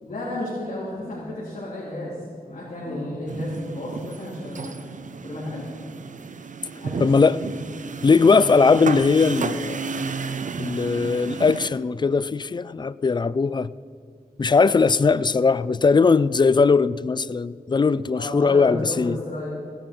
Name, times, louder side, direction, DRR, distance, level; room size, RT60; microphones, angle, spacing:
voice 1, 0.0-2.2 2.5-5.0 5.2-5.7 6.8-7.5 18.1-19.5, left 1 dB, 50° left, 3.6 m, -32 dB
sound 1, 3.3-11.7, right 4 dB, 55° right, 0.7 m, -32 dB
voice 2, 7.0-7.4 8.0-9.8 10.6-13.7 14.4-19.2, left 4 dB, 30° left, 0.3 m, -19 dB
17.0 x 10.0 x 5.3 m
wide cardioid pair, 95°, 16 cm